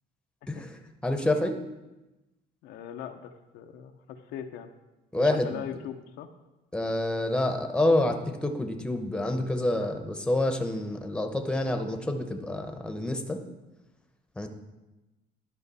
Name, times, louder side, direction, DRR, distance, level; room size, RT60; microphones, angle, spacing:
voice 1, 0.5-1.6 5.1-5.7 6.7-13.4 14.4-14.5, left 1 dB, 5° left, 6 dB, 0.8 m, -28 dB
voice 2, 2.6-4.7 5.2-6.3, left 9 dB, 85° left, 6 dB, 0.7 m, -40 dB
12.0 x 5.2 x 4.1 m, 1.0 s
cardioid pair, 110°, 17 cm